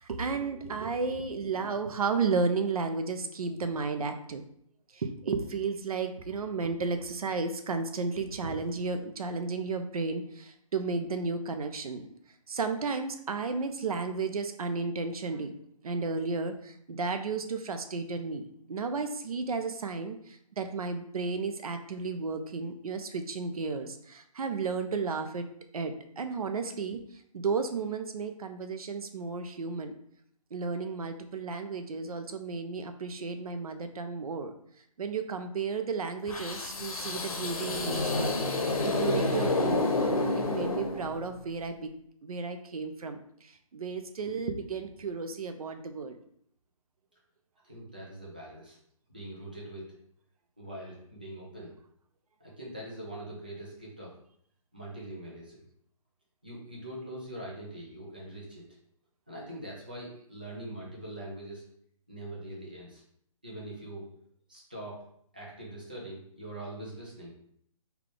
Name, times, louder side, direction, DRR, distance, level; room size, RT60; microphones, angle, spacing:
voice 1, 0.0-4.4 4.9-12.1 12.5-15.5 15.8-18.4 18.7-25.5 25.7-27.0 27.3-29.9 30.5-34.5 35.0-38.4 38.8-40.0 40.4-41.9 42.2-46.2, right 4 dB, 85° right, 7 dB, 0.5 m, -33 dB
sound 1, 36.3-41.4, left 2 dB, 90° left, 0.8 m, -29 dB
voice 2, 47.6-48.8 49.1-49.9 50.6-51.7 52.4-54.1 54.7-55.6 56.4-58.6 59.3-61.6 62.1-63.0 63.4-64.1 64.5-65.0 65.3-67.3, right 1 dB, 15° right, -5 dB, 0.4 m, -42 dB
3.4 x 2.3 x 3.7 m, 0.68 s
hypercardioid pair, 180°, 18 cm